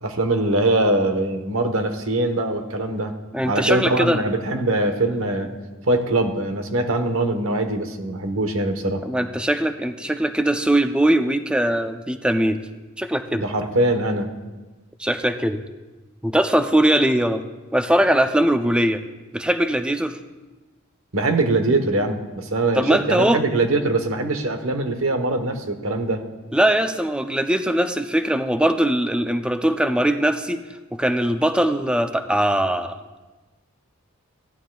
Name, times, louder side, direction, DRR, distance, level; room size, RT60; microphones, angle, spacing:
voice 1, 0.0-3.1 3.4-5.5 5.9-9.1 13.3-14.3 21.1-26.2, right 2 dB, 75° right, 6 dB, 1.0 m, -22 dB
voice 2, 3.3-4.2 9.0-12.6 13.0-13.4 15.0-15.6 16.2-17.4 17.7-19.0 19.3-20.2 22.7-23.4 26.5-30.6 30.9-33.0, right 1 dB, 5° right, 7 dB, 0.5 m, -21 dB
16.0 x 11.5 x 2.3 m, 1.2 s
head